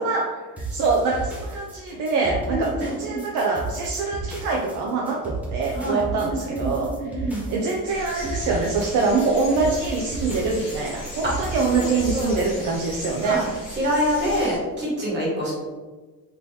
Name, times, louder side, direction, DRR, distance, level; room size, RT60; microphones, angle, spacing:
voice 1, 0.0-13.4, right 4 dB, 60° right, -1 dB, 0.5 m, -25 dB
sound 1, 0.6-12.5, right 3 dB, 5° right, 0.5 m, -33 dB
voice 2, 2.5-3.2 5.7-7.4 11.2-11.3 11.7-12.5 13.2-15.5, equal, 30° right, -5 dB, 1.3 m, -26 dB
sound 2, 7.9-14.6, left 1 dB, 35° left, 1.3 m, -37 dB
3.6 x 2.9 x 2.6 m, 1.3 s
cardioid pair, 175°, 33 cm